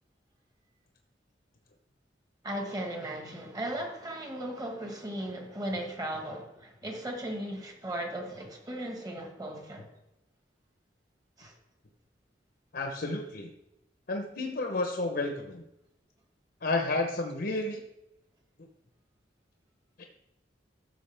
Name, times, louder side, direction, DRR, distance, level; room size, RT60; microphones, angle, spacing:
voice 1, 2.4-9.9 11.4-11.5, right 1 dB, 20° right, 1.5 m, -37 dB
voice 2, 12.7-13.5 14.1-15.6 16.6-17.8 18.6-18.7 20.0-20.1, left 2 dB, 60° left, 0.9 m, -31 dB
13.0 x 6.4 x 3.4 m
head